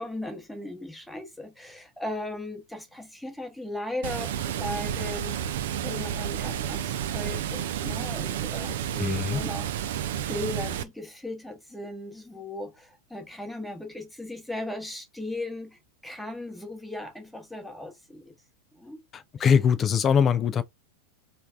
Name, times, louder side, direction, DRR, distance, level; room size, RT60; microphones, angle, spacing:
voice 1, 0.0-5.4 5.8-18.3 18.7-19.0 19.4-19.5, left 1 dB, ahead, 1.0 m, -37 dB
Water, 4.0-10.8, right 10 dB, 55° right, 0.4 m, -31 dB
voice 2, 9.0-9.4 19.1-20.6, left 7 dB, 25° left, 0.3 m, -22 dB
3.2 x 2.3 x 2.4 m
figure-of-eight pair, 90°, 0 cm